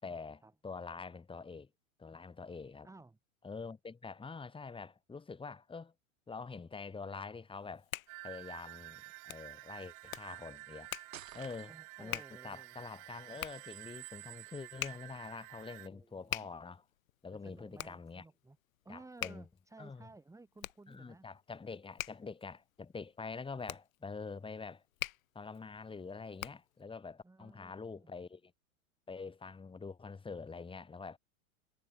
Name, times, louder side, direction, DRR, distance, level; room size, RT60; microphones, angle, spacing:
voice 1, 0.0-1.7 2.0-2.9 3.4-5.9 6.3-7.9 8.2-10.9 11.3-11.7 12.0-16.8 17.2-18.2 18.9-19.5 19.8-20.1 20.9-24.8 25.3-28.5 29.1-31.2, left 4 dB, 15° left, 4.3 m, -46 dB
voice 2, 2.8-3.2 11.7-12.8 15.8-16.4 17.3-18.6 18.8-21.3 27.2-28.1, right 3 dB, 5° right, 4.1 m, -56 dB
Hands, 7.5-26.8, left 13 dB, 80° left, 0.7 m, -46 dB
sound 1, 8.1-15.9, right 29 dB, 45° right, 6.7 m, -50 dB
sound 2, 11.1-12.1, right 11 dB, 75° right, 1.8 m, -51 dB
hypercardioid pair, 105°, 41 cm